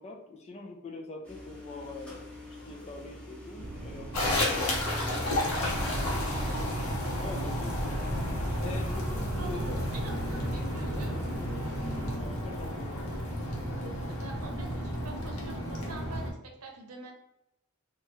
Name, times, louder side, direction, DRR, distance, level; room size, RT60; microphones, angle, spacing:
voice 1, 0.0-5.4 5.7-6.5 7.2-8.0 8.6-10.5 10.9-11.4 12.1-13.1, left 2 dB, 30° left, 1 dB, 0.4 m, -44 dB
sound 1, 1.2-9.1, left 1 dB, 5° left, 0.7 m, -46 dB
sound 2, 3.6-12.2, right 1 dB, 45° right, 1.0 m, -37 dB
sound 3, 4.1-16.3, left 1 dB, 90° left, 0.8 m, -32 dB
voice 2, 4.9-6.6 9.4-11.2 14.1-17.1, right 3 dB, 90° right, 2 dB, 0.7 m, -47 dB
3.0 x 2.3 x 3.0 m, 0.85 s
head